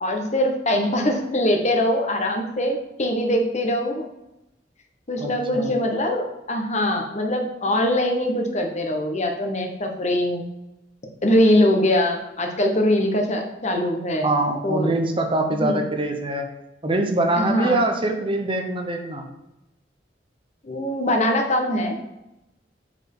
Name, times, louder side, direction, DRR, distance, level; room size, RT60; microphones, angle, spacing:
voice 1, 0.0-4.1 5.1-10.4 11.2-14.3 14.6-14.9 15.5-15.8 17.4-17.8 20.6-22.1, left 1 dB, 40° left, 3 dB, 1.2 m, -22 dB
voice 2, 5.2-5.7 14.2-16.5 16.8-19.3, right 2 dB, 30° right, 4 dB, 1.0 m, -24 dB
8.4 x 4.6 x 5.5 m, 0.91 s
head